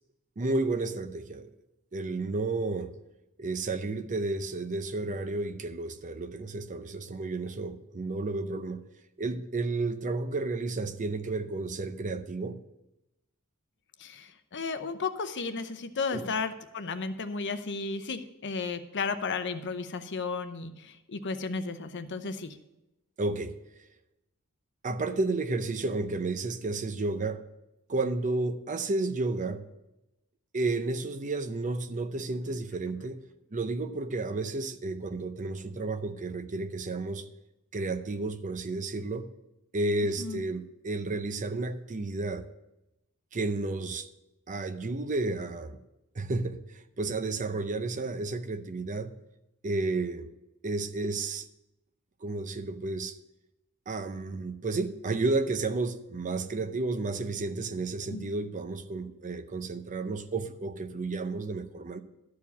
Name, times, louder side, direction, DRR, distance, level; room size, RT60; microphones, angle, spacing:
voice 1, 0.4-1.5 1.9-3.0 3.4-8.8 9.2-12.6 16.1-16.3 23.2-23.6 24.8-27.4 27.9-29.7 30.5-33.2 33.5-37.3 37.7-39.3 39.7-42.4 43.3-44.1 44.5-45.8 46.1-49.1 49.6-50.3 50.6-51.5 52.2-53.2 53.9-62.0, right 3 dB, 35° right, 0.6 m, -32 dB
voice 2, 14.0-22.6 40.2-40.4 58.1-58.3, left 4 dB, 55° left, 0.7 m, -34 dB
12.5 x 4.8 x 7.1 m
head